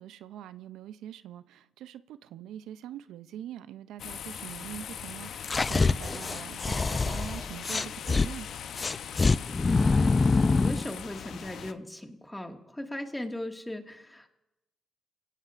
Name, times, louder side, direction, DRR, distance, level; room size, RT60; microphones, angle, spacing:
voice 1, 0.0-8.5, right 11 dB, 90° right, 0.4 m, -43 dB
sound 1, 4.0-11.7, left 8 dB, 75° left, 0.6 m, -41 dB
sound 2, 5.4-8.3 8.8-10.8, left 3 dB, 35° left, 0.4 m, -25 dB
voice 2, 10.5-14.3, left 1 dB, 10° left, 1.8 m, -37 dB
26.0 x 17.0 x 2.5 m
cardioid pair, 70°, 0 cm